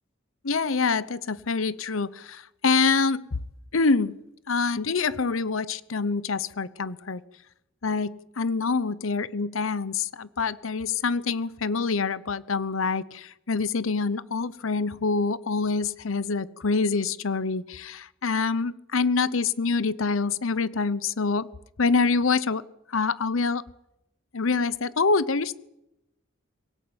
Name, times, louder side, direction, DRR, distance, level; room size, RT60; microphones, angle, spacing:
voice 1, 0.4-3.4 3.7-4.1 4.5-7.2 7.8-21.5 21.8-22.6 22.9-23.6 24.3-25.6, left 4 dB, 85° left, 18 dB, 0.8 m, -26 dB
23.0 x 17.0 x 8.8 m, 0.86 s
head